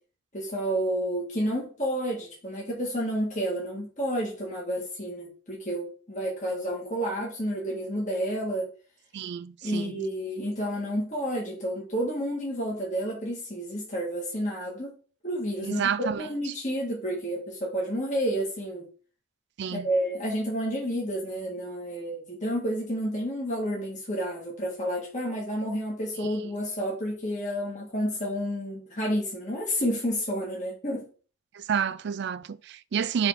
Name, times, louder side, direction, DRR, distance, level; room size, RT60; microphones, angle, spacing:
voice 1, 0.3-8.7 9.6-14.9 15.2-18.9 19.7-31.1, equal, 35° left, 1.7 m, -30 dB
voice 2, 9.1-9.9 15.6-16.5 19.6-19.9 31.5-33.3, right 7 dB, 55° right, 0.4 m, -30 dB
5.5 x 3.5 x 5.8 m
head